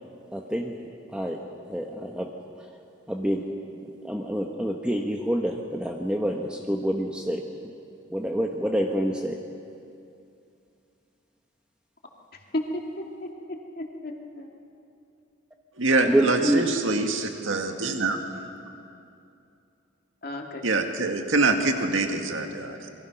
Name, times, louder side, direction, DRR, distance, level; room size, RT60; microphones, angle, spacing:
voice 1, 0.3-0.7 1.1-1.4 1.7-2.3 2.6-2.7 3.1-3.5 3.8-7.7 8.1-9.4 16.1-16.6, equal, 5° right, 1 dB, 1.0 m, -27 dB
voice 2, 12.3-12.8 13.2-14.5 20.2-20.8, left 1 dB, 50° left, 1 dB, 2.5 m, -34 dB
voice 3, 15.8-18.2 20.6-22.9, right 3 dB, 80° right, 4 dB, 2.0 m, -25 dB
27.0 x 22.5 x 6.0 m, 2.6 s
head